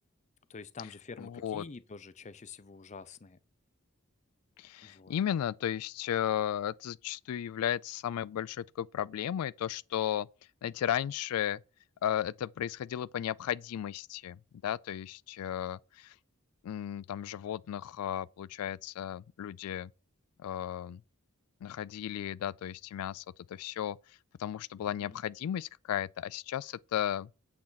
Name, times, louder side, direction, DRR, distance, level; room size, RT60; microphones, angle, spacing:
voice 1, 0.5-3.4 4.8-5.1 25.0-25.2, left 4 dB, 35° left, 0.5 m, -47 dB
voice 2, 1.2-1.6 4.6-10.3 10.6-11.6 12.0-16.2 16.6-19.9 20.4-21.0 21.6-27.3, left 10 dB, 85° left, 0.3 m, -35 dB
8.6 x 7.0 x 4.0 m
head